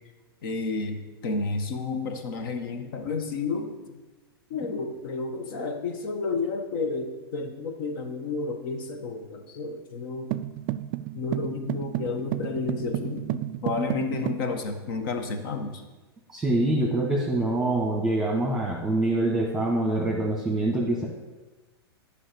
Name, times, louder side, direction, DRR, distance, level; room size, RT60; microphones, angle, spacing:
voice 1, 0.4-3.8 4.5-10.3 11.1-15.8, left 4 dB, 55° left, 6 dB, 1.4 m, -31 dB
sound 1, 10.3-14.5, right 14 dB, 45° right, 0.4 m, -32 dB
voice 2, 16.3-21.1, right 2 dB, 5° right, -2 dB, 1.7 m, -25 dB
10.0 x 5.1 x 6.9 m, 1.2 s
hypercardioid pair, 110°, 13 cm